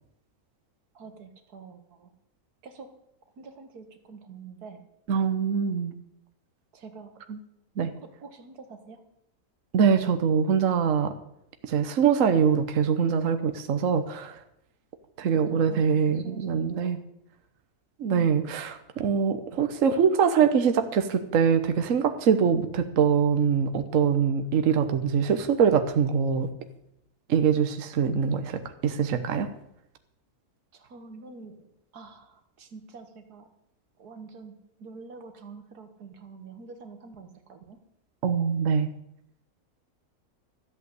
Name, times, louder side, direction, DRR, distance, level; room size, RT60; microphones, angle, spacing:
voice 1, 1.0-2.1 2.6-2.9 3.4-4.8 6.7-7.1 8.2-9.0 15.5-15.9 16.2-16.9 18.1-18.4 30.7-33.5 34.0-37.8, right 4 dB, 90° right, 7 dB, 2.1 m, -46 dB
voice 2, 5.1-5.9 7.3-7.4 7.8-7.9 9.7-11.1 11.6-14.4 15.2-17.0 18.0-26.5 27.3-29.5 38.2-38.9, right 7 dB, 60° right, 8 dB, 1.3 m, -23 dB
13.5 x 8.2 x 8.1 m, 0.78 s
omnidirectional pair, 1.6 m